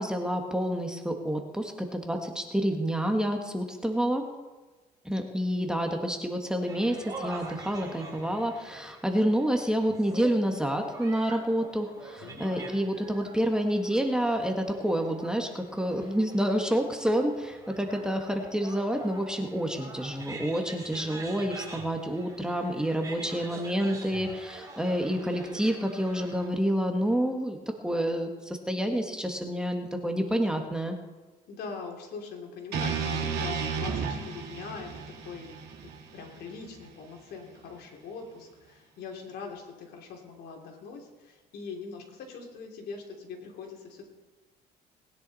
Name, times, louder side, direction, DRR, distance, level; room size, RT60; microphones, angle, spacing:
voice 1, 0.0-4.3 5.0-31.0, equal, 5° right, 3 dB, 1.6 m, -28 dB
sound 1, 6.6-26.5, right 3 dB, 20° right, 3.7 m, -45 dB
voice 2, 12.2-12.7 31.5-35.5 36.1-44.1, left 5 dB, 70° left, 1 dB, 3.2 m, -42 dB
sound 2, 32.7-36.9, right 5 dB, 75° right, 2.8 m, -33 dB
19.5 x 10.0 x 4.2 m, 1.2 s
cardioid pair, 110°, 17 cm